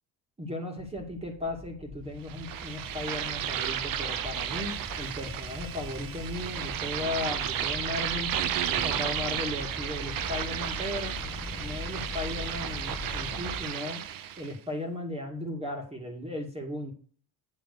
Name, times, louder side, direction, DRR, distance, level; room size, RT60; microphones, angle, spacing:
voice 1, 0.4-8.3 8.7-11.1 11.6-14.0 14.4-16.9, left 2 dB, 15° right, 1 dB, 2.4 m, -36 dB
sound 1, 0.8-13.6, left 3 dB, 20° left, 1.9 m, -41 dB
sound 2, 2.3-14.5, right 10 dB, 65° right, 1.0 m, -33 dB
9.0 x 3.9 x 6.7 m, 0.42 s
cardioid pair, 115°, 36 cm